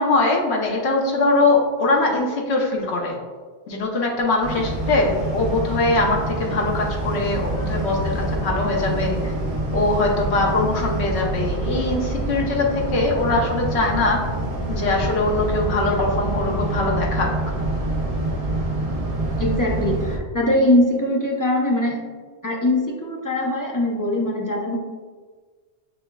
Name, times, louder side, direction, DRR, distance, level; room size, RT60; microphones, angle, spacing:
voice 1, 0.0-3.2 3.7-9.3 9.7-14.2 14.7-17.3, left 2 dB, 80° left, -1 dB, 1.1 m, -22 dB
sound 1, 4.4-20.2, right 1 dB, 40° right, 0.8 m, -26 dB
voice 2, 19.4-22.0 22.4-24.8, left 1 dB, 20° left, -2 dB, 0.6 m, -21 dB
6.4 x 3.4 x 2.2 m, 1.5 s
omnidirectional pair, 1.1 m